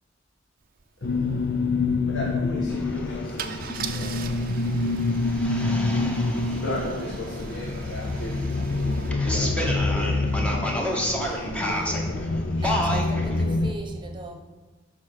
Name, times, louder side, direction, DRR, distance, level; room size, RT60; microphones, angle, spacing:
Car / Engine starting / Idling, 0.8-0.9 1.1-1.4 3.4-9.1, right 7 dB, 50° right, 0.6 m, -41 dB
voice 1, 1.0-4.6 6.3-13.6, equal, 75° left, -4 dB, 1.7 m, -35 dB
sound 1, 1.0-13.7, left 3 dB, 55° left, 0.6 m, -27 dB
sound 2, 2.7-13.4, equal, 5° left, 1.1 m, -32 dB
voice 2, 4.6-5.4 12.6-14.4, right 2 dB, 25° right, 3 dB, 1.1 m, -39 dB
11.0 x 4.4 x 6.3 m, 1.3 s
head